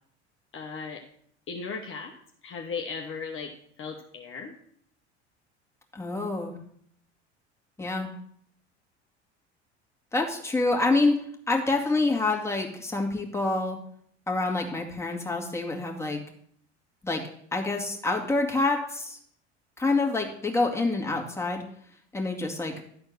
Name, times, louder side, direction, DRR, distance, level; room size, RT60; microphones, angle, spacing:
voice 1, 0.5-1.0 1.5-2.1 2.4-3.5 3.8-4.5, left 5 dB, 35° left, 1 dB, 1.2 m, -36 dB
voice 2, 5.9-6.6 7.8-8.1 10.1-11.1 11.5-13.8 14.3-16.2 17.0-17.2 17.5-19.2 19.8-21.6 22.1-22.7, left 3 dB, 10° left, 0 dB, 2.1 m, -27 dB
12.0 x 4.3 x 6.6 m, 0.64 s
hypercardioid pair, 75°, 35 cm